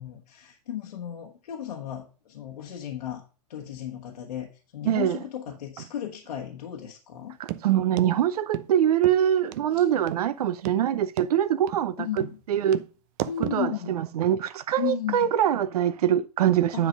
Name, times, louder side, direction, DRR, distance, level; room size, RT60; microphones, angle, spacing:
voice 1, 0.0-3.2 3.5-7.4 9.7-9.9 12.0-12.4 13.3-14.0 14.8-15.3 16.7-16.8, left 10 dB, 75° left, 1.4 m, -35 dB
voice 2, 4.8-5.2 7.4-12.1 12.5-12.8 13.5-16.9, right 10 dB, 70° right, 0.6 m, -24 dB
sound 1, 7.5-7.6 8.0-8.1 8.5-8.7 9.0-9.2 9.5-9.6 10.1-10.2 10.6-10.8 11.2-11.3 11.7-11.8 12.2-12.3 12.7-12.9 13.2-13.6, right 15 dB, 30° right, 0.4 m, -32 dB
9.6 x 4.0 x 5.2 m
hypercardioid pair, 150°, 20 cm